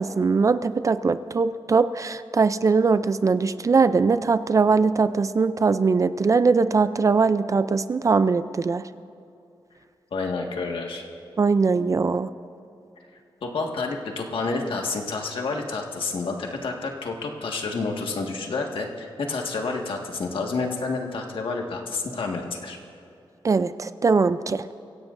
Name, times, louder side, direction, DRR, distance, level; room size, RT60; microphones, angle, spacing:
voice 1, 0.0-8.8 11.4-12.3 23.4-24.6, right 4 dB, 35° right, 13 dB, 0.4 m, -21 dB
voice 2, 10.1-11.0 13.4-22.8, left 3 dB, 70° left, 1 dB, 1.7 m, -29 dB
24.0 x 16.0 x 2.6 m, 2.7 s
wide cardioid pair, 125°, 9 cm